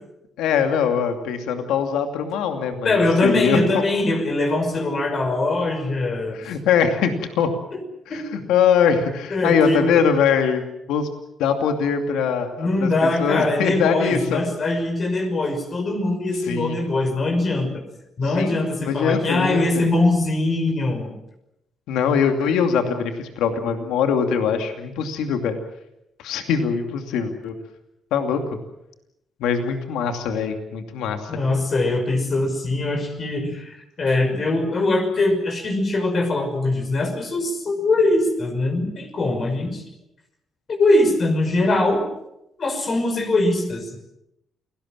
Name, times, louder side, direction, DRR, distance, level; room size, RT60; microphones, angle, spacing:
voice 1, 0.4-3.8 6.3-7.5 8.1-10.6 10.9-11.1 11.4-14.4 16.5-16.8 18.2-19.8 21.9-25.6 26.2-27.5 28.1-28.4 29.4-31.3, left 7 dB, 90° left, 6 dB, 2.6 m, -22 dB
voice 2, 2.8-6.4 7.7-7.8 8.1-8.5 9.3-9.8 12.6-17.8 18.2-21.1 31.3-39.8 40.7-42.1 42.6-44.0, left 2 dB, 45° left, 5 dB, 5.8 m, -22 dB
29.0 x 18.5 x 7.5 m, 0.84 s
cardioid pair, 90°, 0 cm